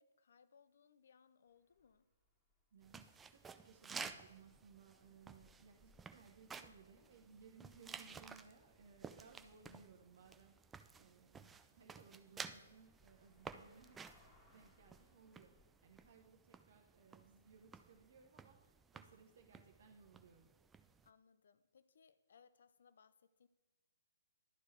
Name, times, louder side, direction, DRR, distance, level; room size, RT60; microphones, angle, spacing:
voice 1, 0.0-2.1 13.5-13.9 21.0-23.5, left 6 dB, 65° left, 15 dB, 0.4 m, -68 dB
sound 1, 1.5-16.1, left 1 dB, 10° left, 1.6 m, -74 dB
voice 2, 2.7-14.0 14.5-20.5, right 5 dB, 60° right, 1 dB, 0.9 m, -63 dB
sound 2, 2.8-21.1, right 5 dB, 10° right, 0.3 m, -54 dB
11.5 x 4.6 x 4.4 m, 1.1 s
figure-of-eight pair, 125°, 0 cm